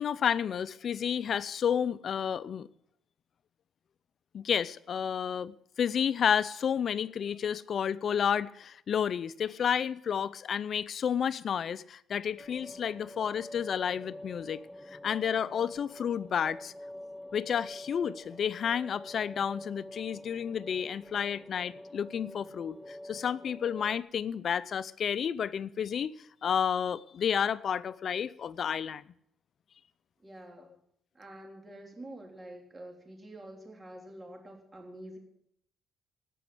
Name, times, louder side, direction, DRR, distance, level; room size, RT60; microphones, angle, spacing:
voice 1, 0.0-2.7 4.3-14.6 14.9-16.7 17.3-26.1 26.4-29.0, left 8 dB, 55° left, 0.5 m, -31 dB
sound 1, 12.4-24.0, left 1 dB, ahead, 0.7 m, -47 dB
voice 2, 30.2-30.8 31.1-35.2, right 1 dB, 25° right, 3.4 m, -47 dB
18.0 x 6.2 x 7.8 m
cardioid pair, 90°, 0 cm